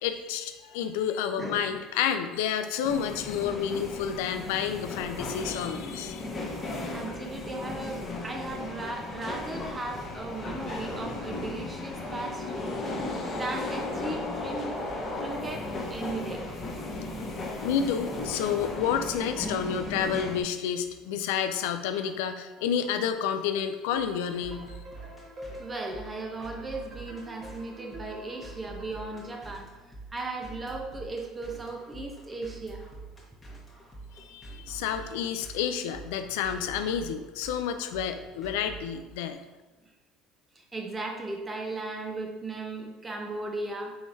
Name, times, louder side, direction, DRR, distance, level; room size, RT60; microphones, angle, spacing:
voice 1, 0.0-6.2 17.6-24.7 34.2-39.4, left 8 dB, 85° left, 8 dB, 0.3 m, -30 dB
voice 2, 1.4-1.8 6.9-12.7 13.2-14.7 15.0-16.5 25.6-29.7 30.1-32.8 40.6-43.9, right 2 dB, 25° right, 2 dB, 0.8 m, -37 dB
sound 1, 2.8-20.4, left 2 dB, 35° left, 1.1 m, -35 dB
sound 2, 23.9-39.3, right 3 dB, 15° left, 1.2 m, -47 dB
sound 3, 24.0-29.5, equal, 45° right, 1.1 m, -48 dB
4.6 x 3.6 x 2.6 m, 1.1 s
supercardioid pair, 90°, 0 cm